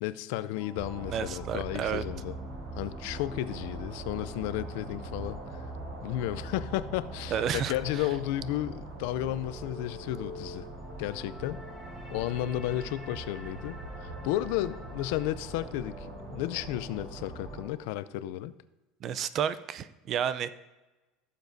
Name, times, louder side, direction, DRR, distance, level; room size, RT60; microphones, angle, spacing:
voice 1, 0.0-2.3 2.7-5.6 6.0-10.7 11.0-11.6 12.1-18.5, left 14 dB, 75° left, 15 dB, 0.4 m, -33 dB
sound 1, 0.5-17.7, equal, 5° right, 1.5 m, -48 dB
sound 2, 0.7-17.6, right 2 dB, 80° right, 3.5 m, -42 dB
voice 2, 1.1-2.0 7.3-8.0 19.0-20.5, right 8 dB, 40° right, 15 dB, 0.4 m, -31 dB
16.0 x 7.2 x 2.7 m, 1.1 s
cardioid pair, 145°, 0 cm